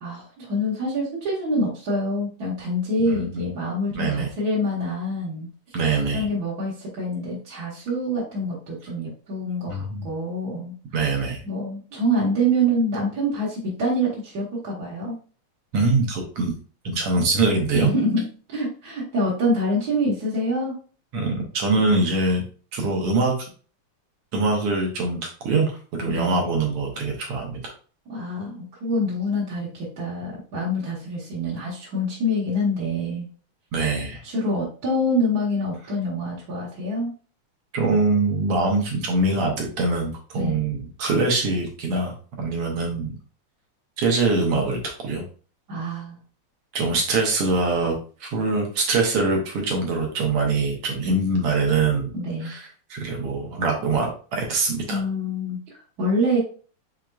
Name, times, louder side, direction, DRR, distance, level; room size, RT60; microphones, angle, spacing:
voice 1, 0.0-5.5 6.1-10.7 11.4-15.1 17.7-20.7 26.0-26.5 28.1-33.3 34.2-37.1 40.3-40.6 45.7-46.2 52.1-52.5 54.9-56.4, equal, 50° right, -6 dB, 1.1 m, -26 dB
voice 2, 3.1-3.4 3.9-4.3 5.7-6.3 9.7-10.0 10.9-11.4 15.7-16.5 16.8-17.9 21.1-22.4 22.7-23.3 24.3-27.7 33.7-34.2 37.7-43.2 44.0-45.2 46.7-52.1 52.4-55.0, right 3 dB, 65° right, 1 dB, 1.5 m, -23 dB
6.0 x 3.6 x 2.3 m, 0.39 s
omnidirectional pair, 3.5 m